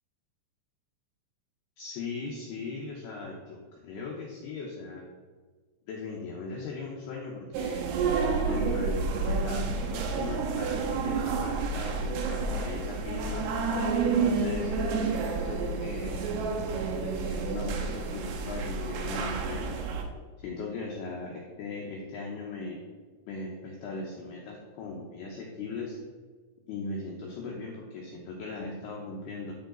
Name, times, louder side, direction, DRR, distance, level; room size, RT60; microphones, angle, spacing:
voice 1, 1.8-5.0 5.9-7.9 8.5-13.5 14.1-14.7 15.3-16.2 17.0-19.8 20.4-22.8 23.3-26.0 26.7-29.5, left 3 dB, 80° left, -1 dB, 2.3 m, -38 dB
sound 1, 7.5-20.0, right 4 dB, 75° right, 2.6 m, -30 dB
11.0 x 4.8 x 3.9 m, 1.5 s
omnidirectional pair, 5.7 m